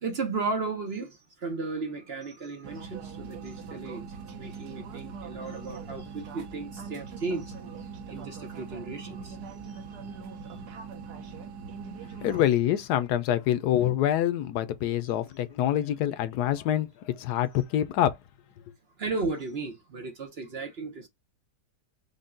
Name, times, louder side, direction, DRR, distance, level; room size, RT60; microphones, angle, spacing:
voice 1, 0.0-9.4 9.7-10.0 10.5-10.6 19.0-21.1, right 3 dB, 50° right, 0.9 m, -35 dB
sound 1, 2.6-12.5, right 5 dB, 80° right, 1.4 m, -41 dB
voice 2, 12.2-18.2, left 11 dB, 85° left, 1.2 m, -26 dB
5.4 x 2.2 x 3.7 m
omnidirectional pair, 1.7 m